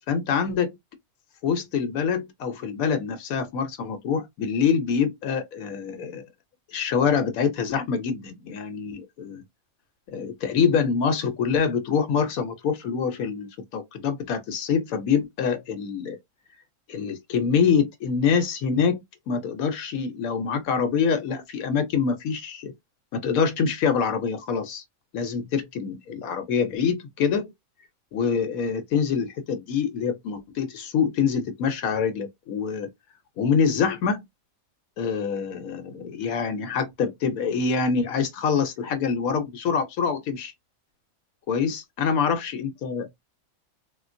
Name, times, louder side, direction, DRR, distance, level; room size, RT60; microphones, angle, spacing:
voice 1, 0.1-0.8 1.4-6.2 6.7-9.4 10.1-16.2 16.9-22.7 23.1-24.8 25.1-27.5 28.1-32.9 33.4-34.2 35.0-40.5 41.5-43.1, left 6 dB, 75° left, 1.1 m, -25 dB
3.7 x 2.4 x 2.5 m
omnidirectional pair, 1.5 m